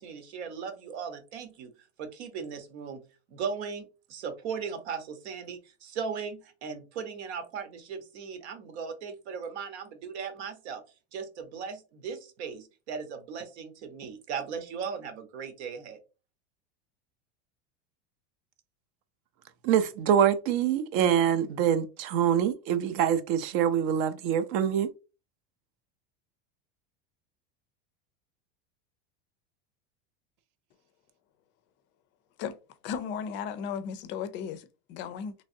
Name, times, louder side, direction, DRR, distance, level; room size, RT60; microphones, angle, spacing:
voice 1, 0.0-1.7 2.0-3.0 3.3-10.8 11.1-16.0, right 6 dB, 80° right, 1.0 m, -37 dB
voice 2, 19.6-24.9, right 9 dB, 55° right, 0.6 m, -25 dB
voice 3, 32.8-35.3, left 7 dB, 35° left, 0.4 m, -35 dB
3.4 x 3.1 x 2.7 m
supercardioid pair, 150°, 33 cm